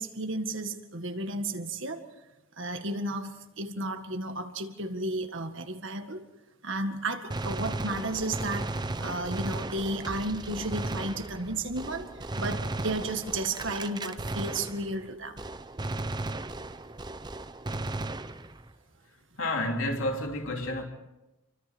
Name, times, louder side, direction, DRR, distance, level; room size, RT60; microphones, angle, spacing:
voice 1, 0.0-2.1 2.6-6.2 6.6-15.4, right 2 dB, 60° right, 1.9 m, -33 dB
Gunshot gunfire, 7.3-15.1 15.4-18.7, right 2 dB, 20° right, 0.7 m, -35 dB
voice 2, 19.4-20.8, left 1 dB, 70° left, 3.3 m, -30 dB
29.0 x 24.0 x 4.5 m
head